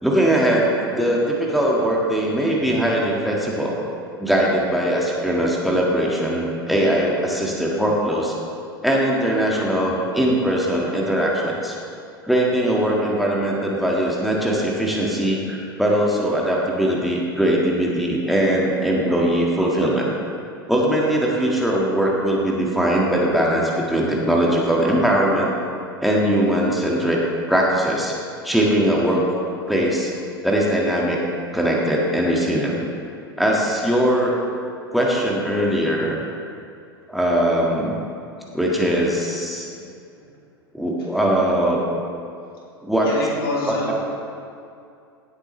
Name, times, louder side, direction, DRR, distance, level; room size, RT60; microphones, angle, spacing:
voice 1, 0.0-3.8 4.2-8.3 8.8-11.7 12.2-20.1 20.7-25.5 26.0-27.2 27.5-28.1 28.4-29.2 29.7-30.1 30.4-31.2 31.5-32.7 33.4-34.3 34.9-36.1 37.1-38.0 38.5-39.6 40.7-41.8 42.8-43.1 43.7-44.0, right 1 dB, ahead, -3 dB, 1.7 m, -20 dB
voice 2, 43.0-44.0, left 2 dB, 70° left, -4 dB, 2.9 m, -27 dB
17.0 x 8.0 x 3.2 m, 2.5 s
figure-of-eight pair, 90°, 13 cm